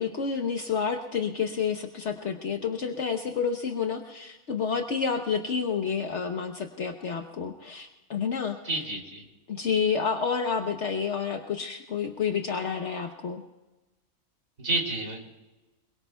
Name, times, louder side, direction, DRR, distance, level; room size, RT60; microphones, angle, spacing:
voice 1, 0.0-8.6 9.5-13.4, left 6 dB, 60° left, 4 dB, 1.2 m, -29 dB
voice 2, 8.6-9.2 14.6-15.2, right 2 dB, 80° right, 0 dB, 3.6 m, -29 dB
28.0 x 22.0 x 2.3 m, 1.1 s
omnidirectional pair, 1.4 m